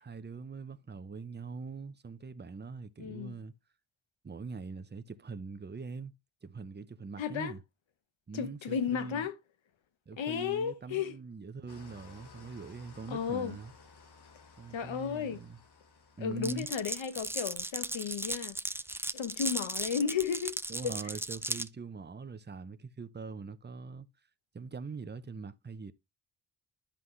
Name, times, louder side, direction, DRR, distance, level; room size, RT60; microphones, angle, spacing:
voice 1, 0.0-3.5 4.2-6.1 6.4-7.6 8.3-9.3 10.1-13.7 14.6-15.6 16.2-16.7 20.7-24.1 24.5-25.9, right 4 dB, 20° right, 0.7 m, -43 dB
voice 2, 3.0-3.4 7.2-7.5 8.3-9.4 10.2-11.2 13.1-13.6 14.7-15.4 16.2-18.6 19.1-20.6 20.8-20.9, left 7 dB, 75° left, 1.2 m, -33 dB
Engine starting / Idling, 11.7-17.1, left 4 dB, 55° left, 1.7 m, -56 dB
Glass, 16.4-21.7, right 2 dB, 5° right, 0.4 m, -36 dB
10.5 x 5.6 x 3.2 m
cardioid pair, 90°, 47 cm